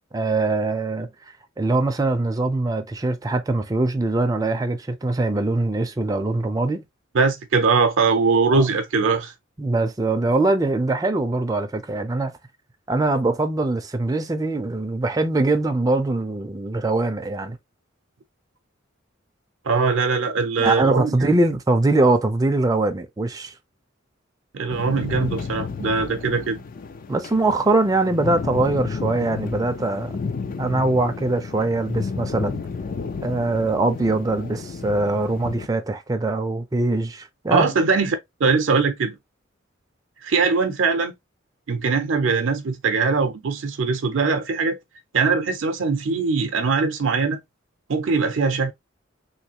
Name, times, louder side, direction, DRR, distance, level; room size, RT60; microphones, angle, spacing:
voice 1, 0.1-1.1 1.6-6.8 8.5-8.6 9.6-12.3 12.9-17.6 20.6-23.5 27.1-30.2 30.6-32.6 33.2-37.7, right 2 dB, 20° right, 0.4 m, -22 dB
voice 2, 7.1-9.3 19.7-21.1 24.5-26.6 37.5-39.2 40.2-41.1 41.7-44.8 45.1-47.4 47.9-48.7, right 4 dB, 70° right, 0.5 m, -21 dB
sound 1, 24.7-35.7, left 5 dB, 45° left, 0.4 m, -32 dB
3.2 x 2.7 x 2.8 m
head